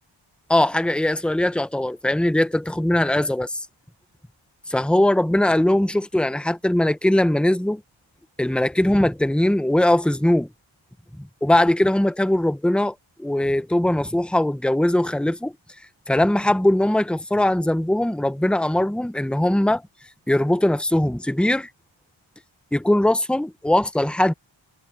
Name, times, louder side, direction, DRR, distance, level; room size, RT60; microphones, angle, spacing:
voice 1, 0.5-3.6 4.7-7.8 8.4-10.5 11.2-15.5 16.1-19.8 20.3-21.7 22.7-24.3, left 1 dB, ahead, 1.0 m, -20 dB
wide cardioid pair, 50°, 48 cm